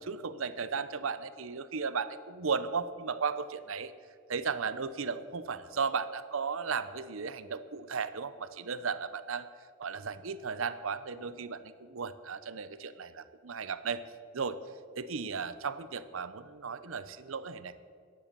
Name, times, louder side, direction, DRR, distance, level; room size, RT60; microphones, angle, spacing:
voice 1, 0.0-3.9 4.3-9.5 9.8-14.1 14.3-14.6 15.0-17.7, right 5 dB, 75° right, 14 dB, 0.7 m, -35 dB
14.5 x 10.0 x 6.8 m, 2.2 s
head